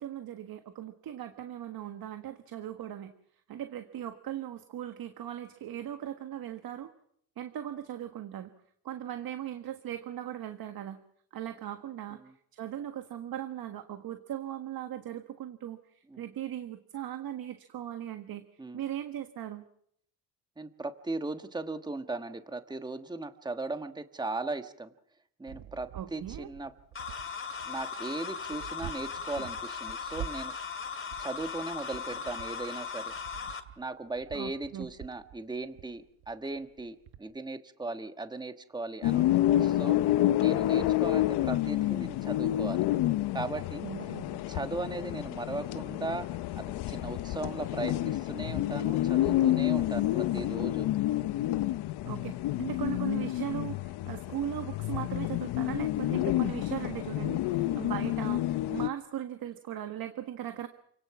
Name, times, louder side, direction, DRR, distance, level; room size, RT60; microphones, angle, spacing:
voice 1, 0.0-3.1 3.5-6.9 7.4-8.5 8.8-11.0 11.3-12.2 12.5-18.4 18.7-19.6 25.9-26.5 34.3-34.9 43.8-44.4 52.0-60.7, right 11 dB, 60° right, 8 dB, 1.6 m, -38 dB
voice 2, 20.6-24.9 25.4-26.7 27.7-30.5 31.2-33.1 33.8-40.0 40.4-42.8 43.3-43.9 44.5-46.3 46.6-50.9 57.6-57.8, right 3 dB, 10° right, 8 dB, 1.4 m, -38 dB
sound 1, 25.5-37.2, right 10 dB, 80° right, 1.3 m, -47 dB
sound 2, 27.0-33.6, left 6 dB, 30° left, 2.3 m, -38 dB
sound 3, 39.0-58.9, left 14 dB, 70° left, 0.8 m, -29 dB
28.5 x 18.0 x 5.9 m, 0.67 s
cardioid pair, 110°, 40 cm